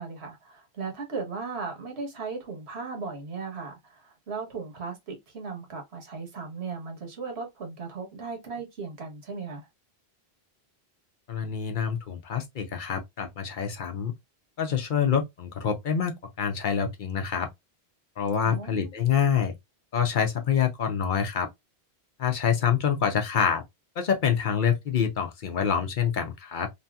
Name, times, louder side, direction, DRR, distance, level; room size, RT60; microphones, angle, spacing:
voice 1, 0.0-9.7 18.4-18.9, right 4 dB, 80° right, 1.3 m, -37 dB
voice 2, 11.3-14.1 14.6-17.5 18.2-19.5 19.9-21.5 22.2-23.6 24.0-26.7, left 7 dB, 55° left, 0.7 m, -26 dB
3.0 x 2.7 x 2.2 m
omnidirectional pair, 1.1 m